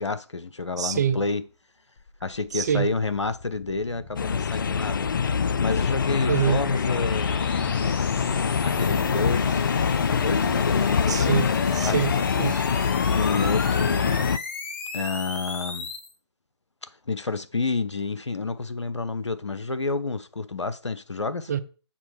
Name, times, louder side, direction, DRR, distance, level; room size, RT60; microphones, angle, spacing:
voice 1, 0.0-1.4 2.2-5.1 5.6-7.4 8.6-9.7 10.1-11.2 11.9-12.0 13.1-14.2 14.9-15.9 16.8-21.5, left 3 dB, 80° left, 0.9 m, -29 dB
voice 2, 0.8-1.2 2.5-2.9 6.3-6.6 11.1-12.6 21.5-21.6, right 8 dB, 40° right, 0.6 m, -25 dB
sound 1, 2.0-16.1, left 4 dB, 25° left, 1.4 m, -36 dB
sound 2, 4.2-14.4, left 6 dB, 45° left, 0.4 m, -24 dB
7.3 x 5.5 x 4.4 m
figure-of-eight pair, 145°, 15 cm